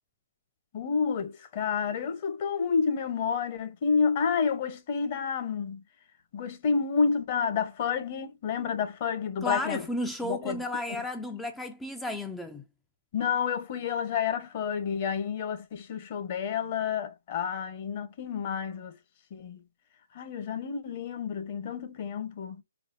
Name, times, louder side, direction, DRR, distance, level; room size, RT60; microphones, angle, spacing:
voice 1, 0.7-5.8 6.3-9.8 10.2-10.6 10.9-11.0 13.1-19.0 19.3-19.6 20.1-22.6, left 6 dB, 40° left, 1.1 m, -29 dB
voice 2, 9.4-12.6, left 2 dB, 5° left, 0.4 m, -33 dB
4.8 x 4.0 x 2.6 m
hypercardioid pair, 150°, 0 cm